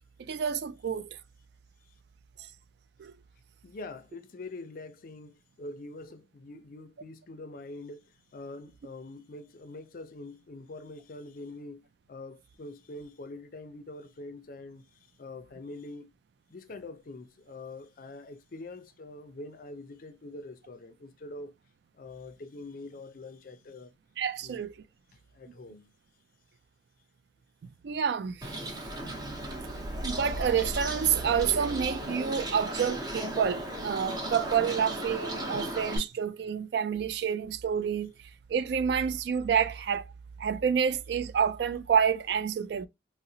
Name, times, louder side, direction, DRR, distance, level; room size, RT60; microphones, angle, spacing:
voice 1, 0.2-1.1 3.0-3.1 24.2-24.7 27.8-28.6 30.0-38.1 38.5-40.1 40.4-42.9, right 7 dB, 70° right, 0.3 m, -28 dB
voice 2, 3.6-8.0 8.3-11.8 12.1-14.8 15.2-16.1 16.5-21.5 22.0-23.9 24.4-24.6 25.3-25.9 34.1-34.2, left 2 dB, 50° left, 0.4 m, -44 dB
Bird, 28.4-36.0, right 1 dB, 25° right, 0.7 m, -36 dB
3.7 x 2.0 x 2.7 m
head